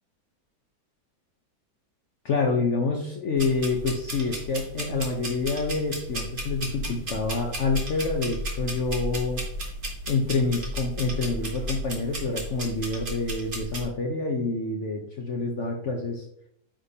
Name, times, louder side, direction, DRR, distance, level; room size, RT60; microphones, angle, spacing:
voice 1, 2.2-9.4 10.1-16.2, left 3 dB, 55° left, 1 dB, 0.9 m, -27 dB
sound 1, 3.4-13.8, right 1 dB, 30° right, 1.4 m, -34 dB
8.9 x 5.1 x 2.8 m, 0.70 s
omnidirectional pair, 1.9 m